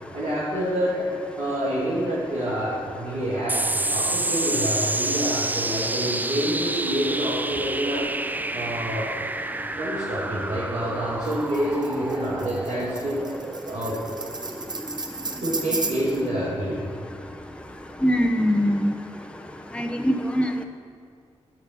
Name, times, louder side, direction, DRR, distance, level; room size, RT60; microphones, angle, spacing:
voice 1, 0.1-1.1 1.4-8.1 8.5-9.1 9.8-13.2 13.6-14.0 15.4-16.8, right 1 dB, 90° right, -7 dB, 2.9 m, -27 dB
sound 1, 3.5-18.3, right 2 dB, 15° right, 0.4 m, -30 dB
Tambourine, 11.2-16.3, right 3 dB, 35° right, 1.0 m, -34 dB
voice 2, 18.0-18.9 19.7-20.5, equal, 10° left, 4 dB, 0.9 m, -22 dB
8.8 x 7.2 x 7.7 m, 2.3 s
cardioid pair, 55°, 12 cm